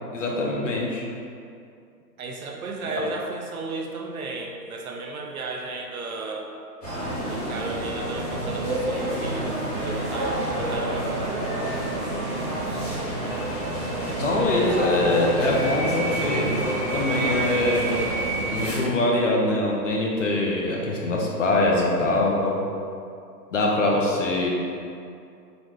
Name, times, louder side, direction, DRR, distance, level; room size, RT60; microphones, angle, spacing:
voice 1, 0.1-1.0 14.2-16.5 16.9-17.9 18.5-22.6 23.5-24.5, left 2 dB, 50° left, -2 dB, 0.6 m, -23 dB
voice 2, 2.2-6.5 7.3-11.9, right 3 dB, 60° right, 1 dB, 0.6 m, -34 dB
sound 1, 6.8-18.7, right 1 dB, 25° left, 1.0 m, -28 dB
3.9 x 2.5 x 3.0 m, 2.5 s
hypercardioid pair, 155°, 49 cm